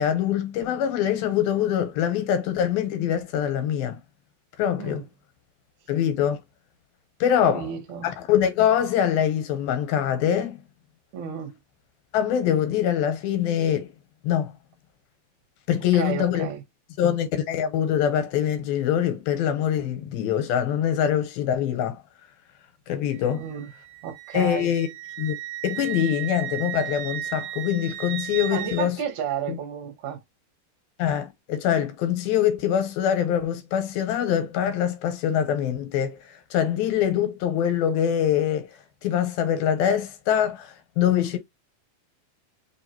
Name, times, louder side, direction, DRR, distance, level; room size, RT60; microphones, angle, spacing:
voice 1, 0.0-4.0 4.6-5.0 5.9-6.4 7.2-7.6 8.0-10.6 12.1-13.9 14.2-14.5 15.7-16.5 17.0-22.0 22.9-23.4 24.3-24.9 25.2-25.4 25.6-29.0 29.5-29.6 31.0-36.2 36.5-38.7 39.0-41.4, left 9 dB, 85° left, 2.7 m, -24 dB
voice 2, 7.5-8.1 11.1-11.5 15.9-16.6 23.3-23.7 24.0-24.7 28.5-30.2, right 7 dB, 65° right, 2.3 m, -32 dB
Wind instrument woodwind instrument, 23.1-28.9, right 13 dB, 85° right, 2.4 m, -35 dB
5.5 x 2.3 x 2.9 m
omnidirectional pair, 4.2 m